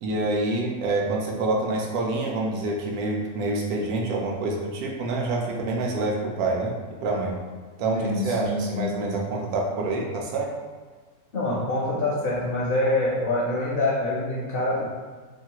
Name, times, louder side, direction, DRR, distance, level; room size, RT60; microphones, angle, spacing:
voice 1, 0.0-6.7 7.0-7.4 7.8-10.5, right 2 dB, 85° right, -1 dB, 1.1 m, -27 dB
voice 2, 7.9-8.9 11.3-14.9, left 2 dB, 65° left, -6 dB, 0.6 m, -25 dB
2.9 x 2.3 x 2.8 m, 1.4 s
omnidirectional pair, 1.5 m